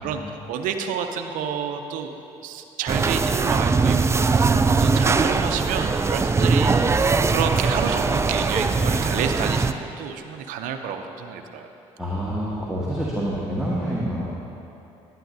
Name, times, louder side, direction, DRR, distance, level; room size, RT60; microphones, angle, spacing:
voice 1, 0.5-2.1 2.4-11.7, right 7 dB, 70° right, 6 dB, 0.6 m, -29 dB
sound 1, 2.9-9.7, right 4 dB, 20° right, 0.3 m, -21 dB
voice 2, 12.0-14.4, equal, 5° right, -7 dB, 1.5 m, -27 dB
11.0 x 9.4 x 2.7 m, 2.8 s
hypercardioid pair, 65°, 14 cm